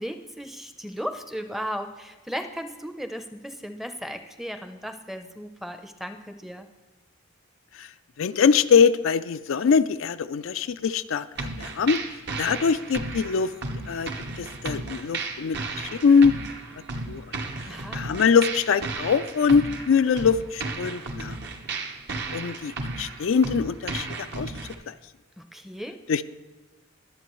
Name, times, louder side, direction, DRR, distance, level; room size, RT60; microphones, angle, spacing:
voice 1, 0.0-6.7 17.7-18.0 25.4-26.0, equal, ahead, 7 dB, 0.6 m, -36 dB
voice 2, 8.2-12.0 12.4-13.5 13.9-14.1 14.4-16.3 17.1-17.2 17.9-21.4 22.3-24.5 24.9-25.0 26.1-26.2, left 6 dB, 75° left, 11 dB, 0.4 m, -23 dB
sound 1, 11.3-24.7, right 3 dB, 55° right, 1.0 m, -34 dB
21.5 x 7.7 x 3.1 m, 1.2 s
head